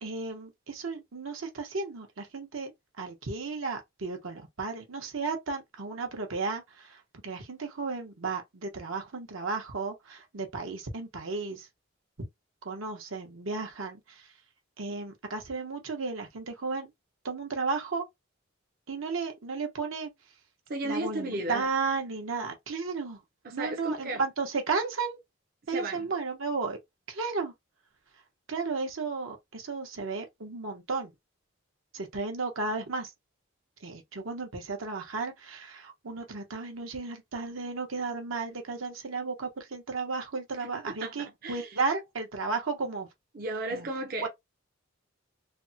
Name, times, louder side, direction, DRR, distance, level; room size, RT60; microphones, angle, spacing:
voice 1, 0.0-2.7 3.0-11.7 12.2-12.3 12.6-14.3 14.8-16.9 17.2-18.0 18.9-20.1 20.8-23.2 23.5-25.2 25.7-26.8 27.1-27.5 28.5-31.1 31.9-33.1 33.8-43.1 43.7-43.9 44.2-44.3, right 4 dB, 80° right, 0.9 m, -34 dB
voice 2, 20.7-21.7 23.4-24.2 25.7-26.1 40.6-40.7 41.0-41.7 43.3-44.3, right 2 dB, 45° right, 0.6 m, -34 dB
3.4 x 2.1 x 2.7 m
head